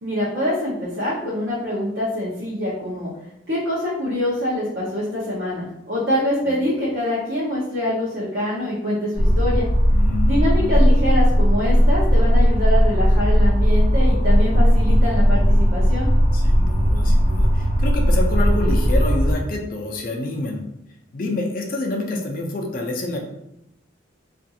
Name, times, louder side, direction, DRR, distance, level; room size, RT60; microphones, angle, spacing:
voice 1, 0.0-3.1 3.5-9.7 10.2-16.1, left 1 dB, 65° right, -7 dB, 0.7 m, -24 dB
sound 1, 9.2-19.4, equal, 40° right, 1.0 m, -17 dB
voice 2, 9.9-10.7 16.3-20.6 21.1-23.2, left 2 dB, 45° left, 1 dB, 0.4 m, -27 dB
2.5 x 2.3 x 2.7 m, 0.84 s
head